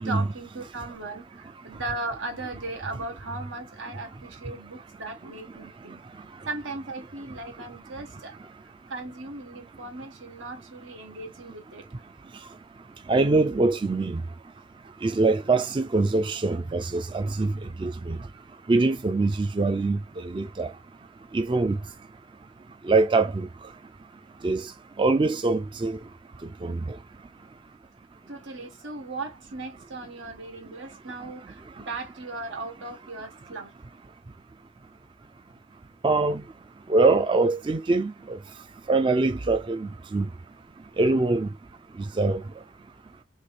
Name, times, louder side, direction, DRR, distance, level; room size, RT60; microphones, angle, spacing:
voice 1, 0.0-6.0 6.4-8.3 8.9-11.8 28.3-33.7, right 2 dB, 90° right, 1.6 m, -37 dB
voice 2, 13.1-14.2 15.0-18.2 18.7-20.7 21.3-21.8 22.8-23.5 24.4-24.7 25.0-26.0 26.6-27.0 36.0-36.4 36.9-38.4 38.9-40.3 41.0-41.5 42.1-42.4, right 3 dB, 25° right, 0.3 m, -23 dB
3.3 x 2.8 x 4.1 m
head